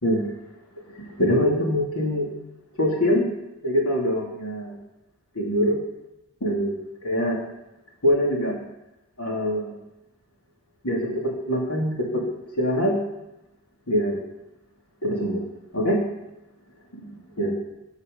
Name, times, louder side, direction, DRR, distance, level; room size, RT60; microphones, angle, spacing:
voice 1, 0.9-2.3 2.8-3.3 3.6-4.7 5.3-5.8 6.4-6.8 7.0-7.4 8.0-8.6 9.2-9.7 10.8-12.2 12.6-13.0 13.9-14.2 15.0-15.4 15.7-16.0 16.9-17.0 17.4-17.5, equal, 90° left, -2 dB, 3.1 m, -23 dB
16.0 x 5.7 x 5.5 m, 0.93 s
head